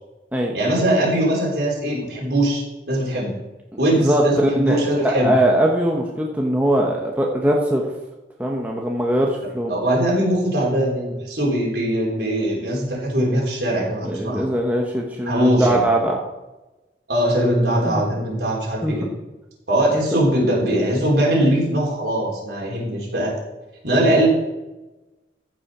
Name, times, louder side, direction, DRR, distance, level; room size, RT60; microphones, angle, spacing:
voice 1, 0.5-3.3 3.8-5.3 9.7-14.5 15.3-15.8 17.1-19.1 19.7-23.4 23.8-24.3, right 1 dB, 65° right, -4 dB, 3.9 m, -21 dB
voice 2, 4.0-7.8 8.4-9.7 14.0-16.2 17.9-18.0 18.8-18.9, right 1 dB, 10° right, -1 dB, 0.9 m, -21 dB
14.5 x 5.6 x 4.9 m, 1.1 s
head